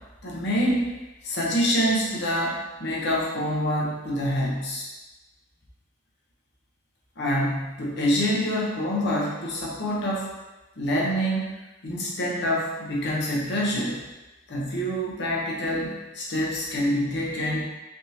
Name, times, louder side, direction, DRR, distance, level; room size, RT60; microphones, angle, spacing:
voice 1, 0.2-0.9 1.2-4.9 7.2-10.3 10.8-11.5 11.8-14.0 14.5-17.7, equal, 55° left, -4 dB, 0.7 m, -26 dB
3.4 x 2.7 x 2.7 m, 1.1 s
head